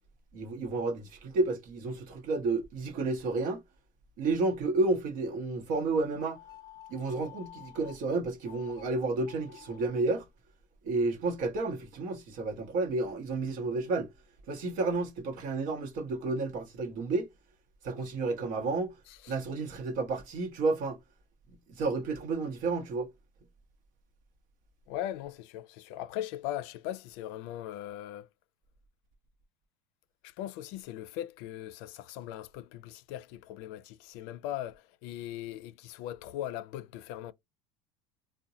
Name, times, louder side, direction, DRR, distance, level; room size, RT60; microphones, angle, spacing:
voice 1, 0.3-3.6 4.2-6.4 6.9-10.3 10.8-14.1 14.5-17.3 17.8-18.9 19.3-21.0 21.5-23.1, right 3 dB, 65° right, 1.0 m, -31 dB
sound 1, 6.2-8.0 8.4-8.8 9.2-10.0, left 11 dB, 25° left, 0.6 m, -51 dB
voice 2, 24.9-28.3 30.2-37.3, left 12 dB, 70° left, 0.4 m, -39 dB
3.6 x 2.2 x 2.8 m
supercardioid pair, 105°, 15 cm